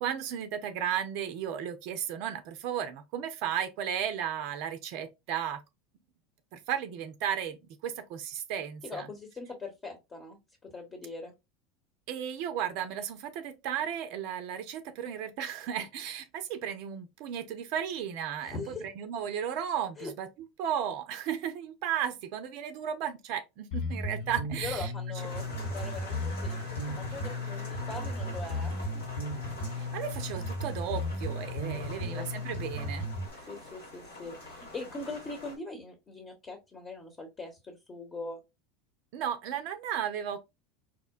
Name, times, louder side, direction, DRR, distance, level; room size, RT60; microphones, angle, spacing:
voice 1, 0.0-5.6 6.5-9.1 12.1-20.3 20.6-24.9 29.7-33.1 33.3-33.4 39.1-40.4, right 9 dB, 60° right, 0.4 m, -34 dB
voice 2, 8.8-10.4 10.6-11.3 18.4-18.9 20.0-20.1 24.6-29.0 31.7-32.3 33.5-38.4, left 3 dB, 25° left, 1.0 m, -41 dB
Bass guitar, 23.7-33.3, left 1 dB, 60° left, 1.5 m, -35 dB
sound 1, 25.1-35.5, left 2 dB, 85° left, 1.2 m, -45 dB
4.7 x 2.1 x 2.3 m
hypercardioid pair, 80°, 0 cm